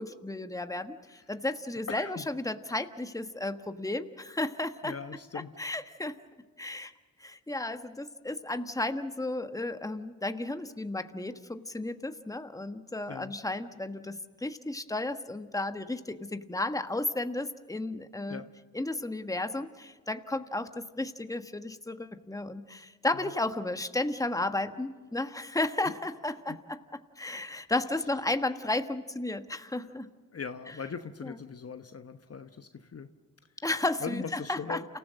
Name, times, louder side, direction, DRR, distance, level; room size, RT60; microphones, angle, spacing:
voice 1, 0.0-5.0 5.6-6.1 6.6-6.9 7.2-18.4 18.7-26.8 27.2-30.1 31.2-31.4 33.6-34.8, left 2 dB, 10° left, 8 dB, 1.4 m, -33 dB
voice 2, 1.9-2.3 4.8-5.5 13.1-13.3 18.3-18.5 23.1-23.3 25.9-26.0 26.5-26.6 30.3-33.1 34.0-34.8, left 5 dB, 40° left, 9 dB, 1.1 m, -40 dB
29.0 x 15.0 x 7.6 m, 1.5 s
supercardioid pair, 45°, 37 cm